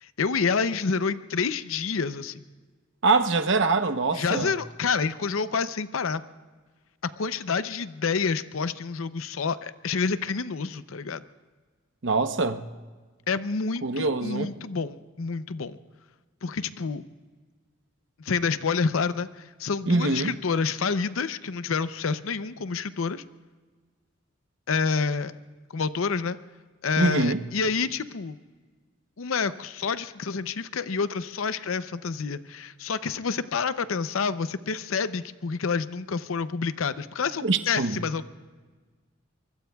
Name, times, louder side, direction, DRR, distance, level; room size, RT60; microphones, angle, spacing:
voice 1, 0.0-2.4 4.1-6.2 7.0-11.2 13.3-15.8 16.4-17.0 18.2-23.2 24.7-25.3 25.7-26.4 26.8-28.4 29.2-38.3, left 5 dB, 85° left, 0.6 m, -28 dB
voice 2, 3.0-4.5 12.0-12.7 13.8-14.5 19.9-20.3 27.0-27.4 37.4-38.0, right 3 dB, 60° right, 0.9 m, -24 dB
23.5 x 23.5 x 2.3 m
head